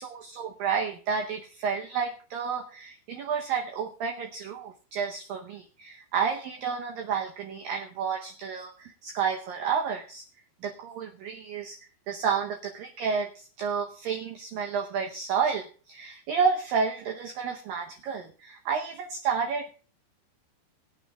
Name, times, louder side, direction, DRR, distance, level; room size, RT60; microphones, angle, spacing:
voice 1, 0.0-10.2 10.6-11.8 12.1-19.8, right 6 dB, 80° right, 3 dB, 2.0 m, -30 dB
23.5 x 9.1 x 2.3 m, 0.40 s
omnidirectional pair, 5.3 m